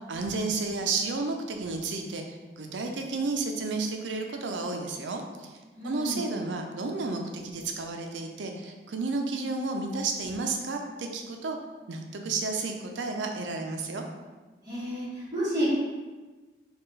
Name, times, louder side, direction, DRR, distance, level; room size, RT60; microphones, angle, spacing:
voice 1, 0.0-5.5 5.8-11.6 11.9-14.0, right 3 dB, 85° right, 3 dB, 0.5 m, -32 dB
voice 2, 5.7-6.2 14.6-15.7, equal, 20° right, -10 dB, 1.4 m, -30 dB
4.3 x 2.4 x 3.1 m, 1.3 s
head